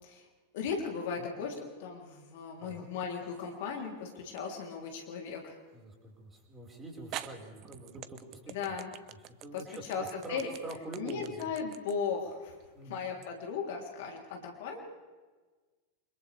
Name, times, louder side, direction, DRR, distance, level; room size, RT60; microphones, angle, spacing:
voice 1, 0.5-5.6 8.5-8.9 9.5-9.6 9.9-10.5 11.0-12.6 12.9-14.8, left 6 dB, 50° left, 1 dB, 3.6 m, -37 dB
sound 1, 3.0-3.6 4.4-4.5 6.4-6.5 7.1-13.3, right 12 dB, 40° right, 0.9 m, -46 dB
voice 2, 5.7-8.7 9.4-11.5 12.7-13.0, right 2 dB, 15° right, 0 dB, 5.2 m, -45 dB
29.0 x 26.0 x 3.5 m, 1.4 s
figure-of-eight pair, 90°, 0 cm